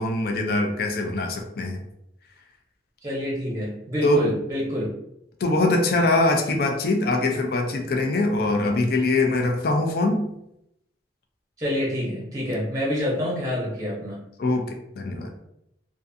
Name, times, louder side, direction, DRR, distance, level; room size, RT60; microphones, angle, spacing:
voice 1, 0.0-1.8 4.0-4.3 5.4-10.3 14.4-15.3, left 2 dB, 55° left, 3 dB, 0.4 m, -23 dB
voice 2, 3.0-4.9 11.6-14.2, left 1 dB, 20° right, -4 dB, 0.6 m, -27 dB
2.5 x 2.4 x 2.5 m, 0.80 s
head